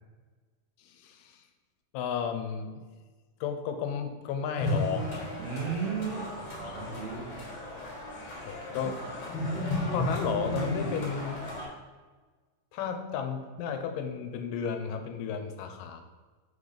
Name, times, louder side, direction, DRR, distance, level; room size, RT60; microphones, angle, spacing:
voice 1, 0.8-1.4 1.9-2.8 3.4-5.5 6.6-6.8 8.5-9.0 9.9-11.4 12.7-16.0, left 7 dB, 85° left, 7 dB, 2.3 m, -33 dB
sound 1, 4.6-11.7, left 1 dB, 55° left, 2.5 m, -34 dB
voice 2, 5.3-7.5 8.8-9.0, right 6 dB, 70° right, -2 dB, 1.7 m, -35 dB
5.5 x 4.0 x 5.0 m, 1.4 s
omnidirectional pair, 3.8 m